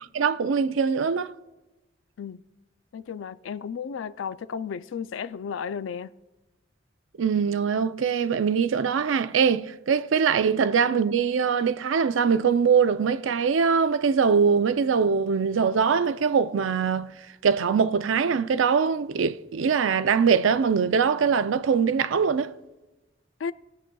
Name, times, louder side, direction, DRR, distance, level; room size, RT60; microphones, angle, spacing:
voice 1, 0.1-1.3 7.2-17.1 17.4-22.5, right 6 dB, 90° right, 0.4 m, -22 dB
voice 2, 2.9-6.1 23.4-23.5, left 6 dB, 80° left, 0.4 m, -33 dB
20.0 x 7.4 x 2.3 m
head